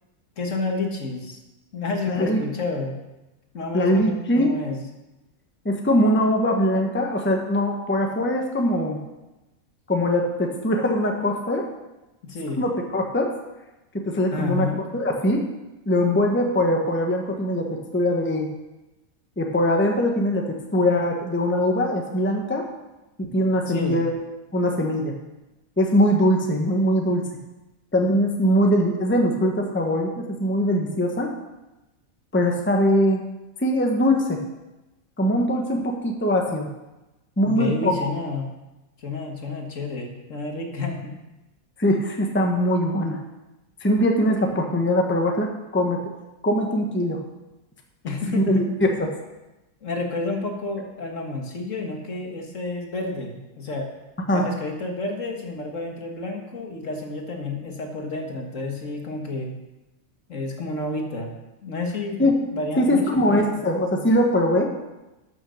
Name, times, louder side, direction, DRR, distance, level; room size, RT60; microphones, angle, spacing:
voice 1, 0.4-1.4 1.7-3.0 3.5-4.9 12.2-12.6 14.3-14.8 23.7-24.0 37.5-38.5 39.0-41.1 48.0-48.7 49.8-53.9 54.3-59.5 60.3-61.3 61.6-62.2 62.5-63.0 63.3-63.6, left 3 dB, 60° left, 2 dB, 1.9 m, -30 dB
voice 2, 2.1-2.4 3.7-4.5 5.6-9.0 9.9-11.6 12.6-13.3 13.9-14.7 14.9-15.4 15.9-18.5 19.4-22.7 23.2-24.1 24.5-25.1 25.8-27.2 27.9-31.3 32.3-33.2 33.6-34.4 35.2-36.7 37.4-37.9 41.8-43.2 43.8-45.5 45.7-46.0 46.4-47.2 48.3-48.9 54.3-54.5 62.2-62.3 62.8-64.7, equal, 10° left, 2 dB, 1.0 m, -21 dB
12.0 x 6.2 x 6.4 m, 1.0 s
omnidirectional pair, 1.5 m